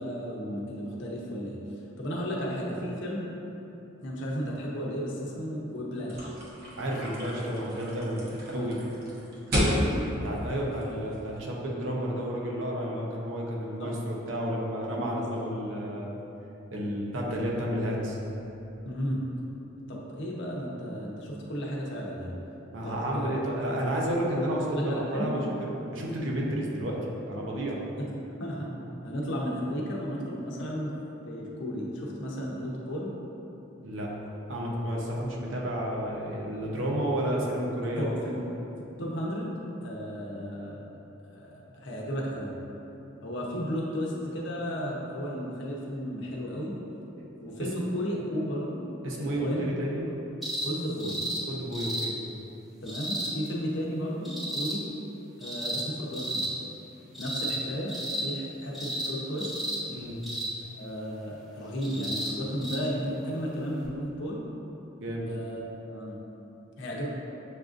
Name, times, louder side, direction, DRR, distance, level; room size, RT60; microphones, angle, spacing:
voice 1, 0.0-1.6 2.0-3.3 4.0-6.3 8.5-8.7 9.6-10.1 13.8-13.9 18.8-19.2 19.9-22.4 22.8-23.3 24.7-25.4 27.7-28.7 29.0-30.9 31.3-33.2 37.9-38.4 39.0-40.8 41.3-42.5 43.2-46.8 47.4-48.8 49.1-49.6 50.0-50.1 50.6-51.2 52.8-54.9 55.4-56.5 57.2-59.5 60.8-64.4 65.3-66.2 66.8-67.1, equal, 65° left, -3 dB, 0.7 m, -34 dB
sound 1, 6.1-11.4, equal, 55° right, 0.9 m, -32 dB
voice 2, 6.8-8.2 8.5-8.8 10.2-16.2 16.7-18.2 22.7-27.0 27.3-27.8 33.8-34.1 34.5-38.1 47.2-47.3 49.0-50.0 51.5-52.1 59.9-60.2 65.0-65.3, equal, 85° right, -3 dB, 0.7 m, -31 dB
sound 2, 50.4-50.7 51.0-51.4 51.7-52.1 52.9-53.3 54.2-54.7 55.4-55.8 56.1-56.5 57.1-57.6 57.9-58.2 58.7-59.1 59.4-59.8 60.2-60.5 61.8-62.3 62.6-62.8 63.8-63.9, right 1 dB, ahead, 0.7 m, -33 dB
6.5 x 2.5 x 2.5 m, 2.9 s
head